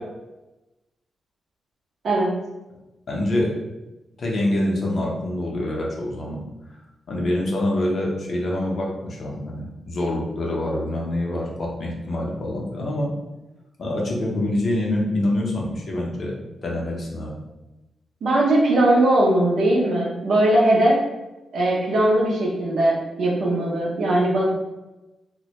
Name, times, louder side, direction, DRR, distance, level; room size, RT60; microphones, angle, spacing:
voice 1, 3.1-3.5 4.2-6.4 7.1-13.1 13.8-16.3 16.6-17.3, left 1 dB, 60° left, -2 dB, 0.6 m, -25 dB
voice 2, 18.2-21.0 21.5-24.4, right 1 dB, 70° right, -3 dB, 0.6 m, -19 dB
2.1 x 2.1 x 2.8 m, 1.0 s
supercardioid pair, 45°, 0 cm